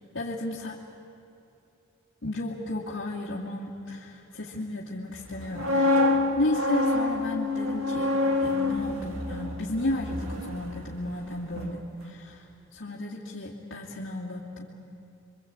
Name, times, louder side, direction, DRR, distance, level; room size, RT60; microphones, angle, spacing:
voice 1, 0.1-0.8 2.2-8.1 8.4-14.7, left 1 dB, 65° left, -6 dB, 2.6 m, -33 dB
sound 1, 5.3-11.3 11.5-11.8, left 2 dB, 85° right, 2.2 m, -27 dB
28.5 x 24.0 x 8.7 m, 2.8 s
head